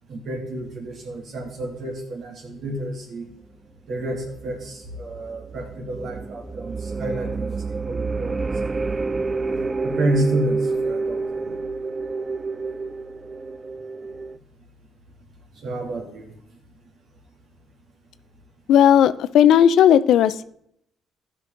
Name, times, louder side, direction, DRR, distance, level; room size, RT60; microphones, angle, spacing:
voice 1, 0.1-3.3 3.9-9.2 9.8-11.5 15.6-16.3 19.4-19.5, right 1 dB, 60° right, 2 dB, 2.7 m, -30 dB
sound 1, 4.2-14.4, right 3 dB, 25° right, 0.3 m, -29 dB
voice 2, 18.7-20.4, left 10 dB, 80° left, 15 dB, 0.5 m, -15 dB
14.0 x 6.1 x 3.8 m, 0.72 s
cardioid pair, 90°, 0 cm